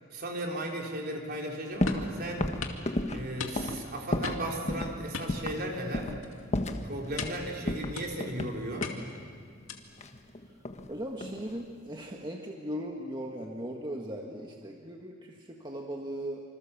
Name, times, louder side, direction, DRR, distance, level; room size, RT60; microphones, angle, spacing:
voice 1, 0.1-2.5 3.1-6.1 6.8-8.9, right 1 dB, 50° right, 0 dB, 3.8 m, -36 dB
sound 1, 1.8-2.1 2.4-4.4 4.7-4.9 5.3-5.6 5.9-6.2 6.5-7.4 7.7-9.0 10.0-10.9 11.2-11.6, left 1 dB, 35° left, 1.4 m, -32 dB
sound 2, 1.9-2.1 2.6-2.8 3.4-3.8 4.2-4.6 5.1-5.9 6.2-6.5 7.2-7.5 8.0-8.4 8.8-9.2 9.7-10.0, left 4 dB, 80° left, 2.3 m, -38 dB
voice 2, 10.9-16.4, equal, 20° right, 0 dB, 1.6 m, -38 dB
26.5 x 26.0 x 7.3 m, 2.2 s
head